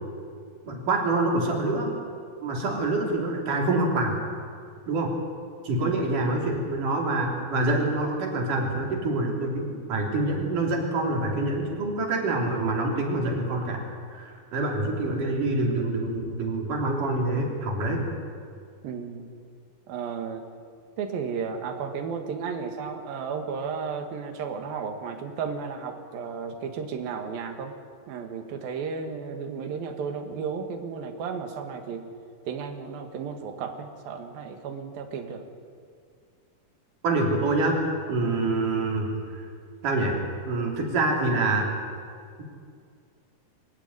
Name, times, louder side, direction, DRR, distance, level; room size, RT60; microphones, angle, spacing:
voice 1, 0.6-1.9 2.4-4.2 4.9-5.1 5.6-13.8 14.1-18.0 37.0-37.8 38.1-39.1 39.8-40.2 40.5-41.7, right 2 dB, 60° right, 0 dB, 4.9 m, -26 dB
voice 2, 18.8-19.3 19.9-20.5 21.0-27.8 28.1-32.1 32.5-35.4, right 6 dB, 80° right, 5 dB, 3.6 m, -33 dB
25.0 x 14.5 x 9.7 m, 2.3 s
omnidirectional pair, 4.1 m